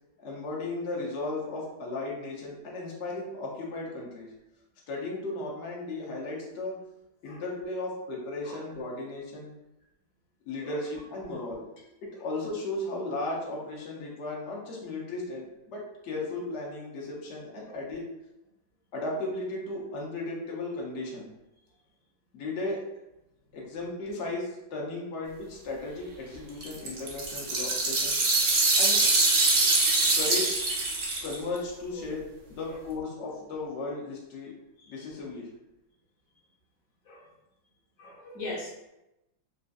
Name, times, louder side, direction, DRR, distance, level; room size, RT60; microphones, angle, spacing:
voice 1, 0.2-4.3 4.9-6.8 7.2-9.5 10.5-11.6 12.2-18.0 18.9-21.3 22.3-22.8 23.5-28.1 28.8-29.1 30.1-30.5 31.2-32.2 32.5-34.5 34.9-35.5, left 2 dB, 80° left, -3 dB, 0.6 m, -35 dB
sound 1, 26.3-26.4 26.6-31.6, right 2 dB, 70° right, 0.6 m, -24 dB
voice 2, 38.0-38.9, left 2 dB, 60° left, -4 dB, 1.0 m, -40 dB
3.7 x 2.5 x 2.3 m, 0.90 s
omnidirectional pair, 2.1 m